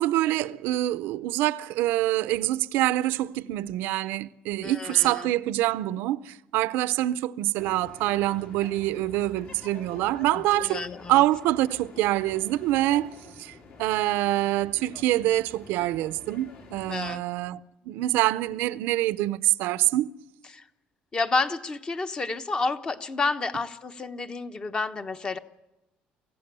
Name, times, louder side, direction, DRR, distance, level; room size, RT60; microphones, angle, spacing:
voice 1, 0.0-13.1 13.4-13.5 13.8-17.6 17.9-20.1, right 15 dB, 90° right, 0.7 m, -25 dB
voice 2, 4.6-5.3 10.5-11.2 16.9-17.2 20.5-20.6 21.1-25.4, left 3 dB, 25° left, 1.1 m, -30 dB
sound 1, 7.6-17.2, left 4 dB, 55° left, 4.1 m, -48 dB
25.5 x 16.0 x 6.9 m
cardioid pair, 140°, 3 cm